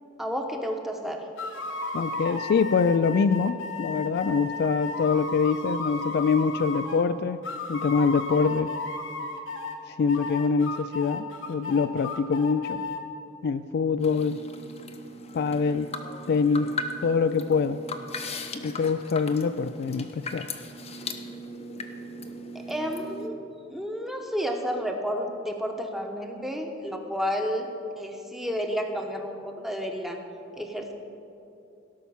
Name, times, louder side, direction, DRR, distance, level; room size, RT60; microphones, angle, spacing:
voice 1, 0.2-1.2 22.7-23.3 23.7-27.7 28.0-30.2 30.5-30.9, equal, ahead, 3 dB, 1.0 m, -31 dB
sound 1, 1.4-7.0 7.4-9.8 10.1-13.0, left 3 dB, 70° left, 1.1 m, -34 dB
voice 2, 1.9-7.4 7.7-8.7 9.9-12.8 13.4-14.4 15.3-15.9 16.3-16.7 17.0-17.8 18.6-20.5, left 5 dB, 55° left, 12 dB, 0.3 m, -24 dB
sound 2, 14.0-23.3, left 2 dB, 30° left, 0.8 m, -38 dB
17.0 x 5.8 x 7.1 m, 2.7 s
head